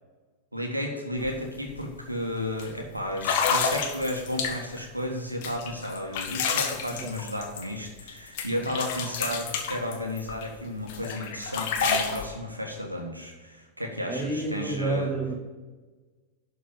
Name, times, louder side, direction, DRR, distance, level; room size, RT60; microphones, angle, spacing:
voice 1, 0.5-15.1, left 1 dB, 85° right, 2 dB, 1.6 m, -33 dB
sound 1, 1.2-1.3 1.7-2.0 2.6-2.7 3.2-4.8 5.4-8.1 8.4-10.5 10.9-12.2, left 6 dB, 50° left, 1.4 m, -29 dB
voice 2, 14.1-15.3, right 2 dB, 10° right, -1 dB, 2.4 m, -29 dB
11.5 x 4.6 x 7.3 m, 1.3 s
figure-of-eight pair, 90°, 0 cm